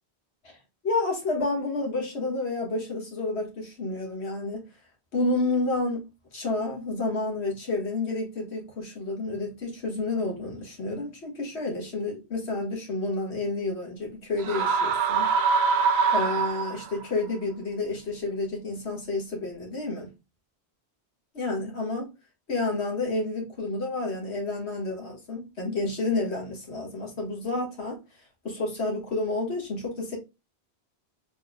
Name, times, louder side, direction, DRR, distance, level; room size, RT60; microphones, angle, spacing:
voice 1, 0.8-4.6 5.1-6.0 6.3-15.3 16.1-20.1 21.3-22.0 22.5-28.0 28.4-30.2, left 2 dB, 80° left, 2.0 m, -30 dB
sound 1, 14.4-17.0, right 5 dB, 70° right, 0.9 m, -24 dB
4.3 x 3.6 x 2.2 m
omnidirectional pair, 1.1 m